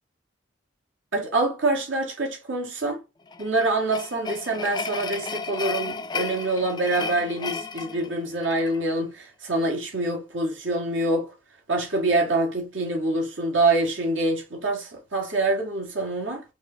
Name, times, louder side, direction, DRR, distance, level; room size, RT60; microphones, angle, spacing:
voice 1, 1.1-3.0 3.4-11.3 11.7-16.4, right 2 dB, 80° right, 1.7 m, -25 dB
sound 1, 3.3-8.8, left 5 dB, 20° left, 0.3 m, -34 dB
5.3 x 2.2 x 3.9 m
head